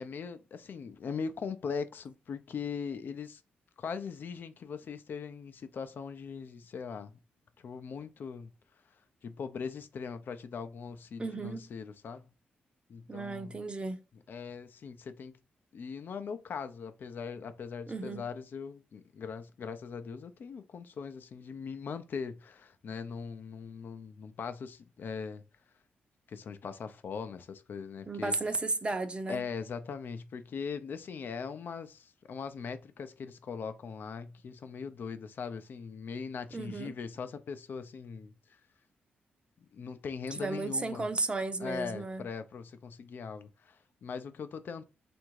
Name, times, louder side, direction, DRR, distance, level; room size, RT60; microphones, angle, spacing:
voice 1, 0.0-3.4 3.8-7.2 7.6-8.5 9.2-12.3 12.9-13.6 14.3-15.3 15.7-25.4 26.3-28.4 29.3-38.6 39.6-41.1 41.6-44.8, left 6 dB, 60° left, 0.5 m, -40 dB
voice 2, 11.2-11.7 13.1-14.0 17.9-18.2 28.1-29.4 36.5-36.9 40.3-42.3, right 3 dB, 25° right, 0.6 m, -34 dB
3.6 x 2.6 x 4.6 m
cardioid pair, 80°, 4 cm